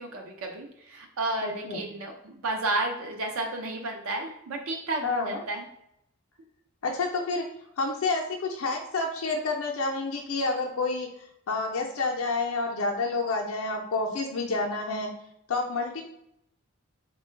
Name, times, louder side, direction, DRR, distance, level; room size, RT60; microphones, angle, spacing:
voice 1, 0.0-5.6, right 2 dB, 75° right, 1 dB, 0.5 m, -32 dB
voice 2, 1.4-1.9 5.0-5.4 6.8-7.5 7.8-11.1 11.5-15.1 15.5-16.0, left 3 dB, 70° left, 0 dB, 0.5 m, -29 dB
3.7 x 2.2 x 4.3 m, 0.79 s
head